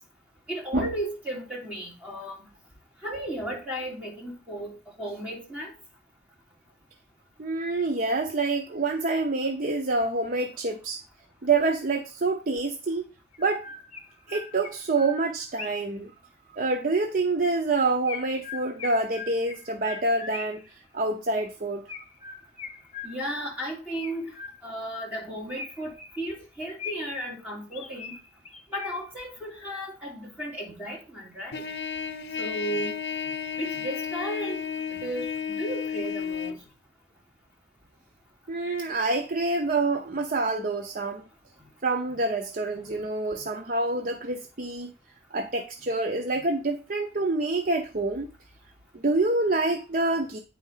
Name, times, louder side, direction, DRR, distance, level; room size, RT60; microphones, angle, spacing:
voice 1, 0.5-2.5 3.0-5.7 23.0-24.3 24.6-28.1 28.7-31.7 32.4-33.0 33.6-34.6 34.9-36.6 42.8-42.9 43.4-43.5, right 1 dB, 10° right, 3.2 m, -35 dB
voice 2, 7.4-11.0 11.4-13.1 13.4-13.7 14.3-16.1 16.5-20.6 20.9-21.8 38.5-41.2 41.8-44.9 45.3-48.3 48.9-50.4, right 3 dB, 50° right, 0.7 m, -27 dB
Chirp tweet, 12.6-12.7 13.3-16.0 18.1-20.7 21.9-23.5 24.0-24.9 25.5-27.2 27.7-29.2, left 5 dB, 40° left, 1.0 m, -41 dB
Trumpet, 31.5-36.6, left 7 dB, 70° left, 0.6 m, -32 dB
9.1 x 4.4 x 5.6 m
head